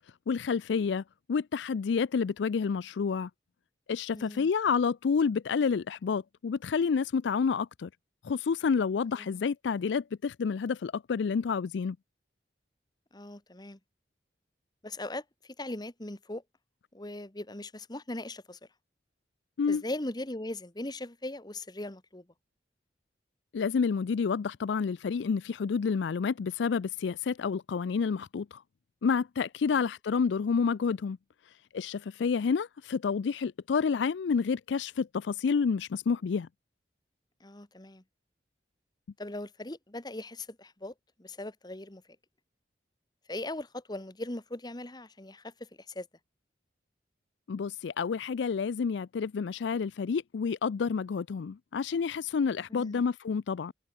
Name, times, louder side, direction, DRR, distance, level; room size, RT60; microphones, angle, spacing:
voice 1, 0.3-1.0 1.3-3.3 3.9-7.9 8.2-12.0 19.6-19.8 23.5-28.6 29.0-31.2 31.7-36.5 47.5-53.7, left 5 dB, 75° left, 0.4 m, -29 dB
voice 2, 4.1-4.5 9.2-9.4 13.1-13.8 14.8-16.4 16.9-18.6 19.7-22.3 29.7-29.9 37.4-38.0 39.2-42.0 43.3-46.1 52.7-53.0, left 1 dB, 25° left, 1.4 m, -39 dB
head